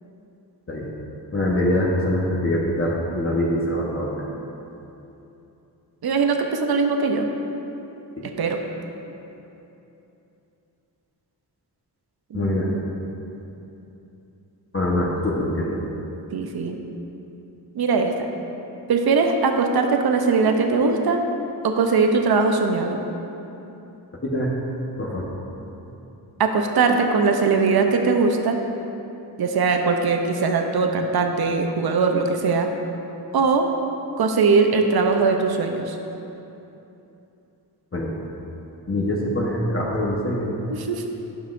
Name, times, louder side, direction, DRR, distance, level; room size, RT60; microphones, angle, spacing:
voice 1, 1.3-4.1 8.2-8.3 12.3-12.7 14.7-15.8 24.2-24.5 25.0-25.2 37.9-38.1 38.9-40.5, left 1 dB, 30° left, -5 dB, 1.1 m, -23 dB
voice 2, 6.0-7.3 8.4-8.6 12.3-12.9 16.3-16.8 17.7-18.3 18.9-21.2 21.6-23.0 26.4-28.6 29.4-32.7 33.3-33.6 34.2-36.0 40.7-41.1, right 4 dB, 60° right, 4 dB, 0.7 m, -20 dB
11.0 x 5.5 x 2.6 m, 2.9 s
cardioid pair, 50°, 43 cm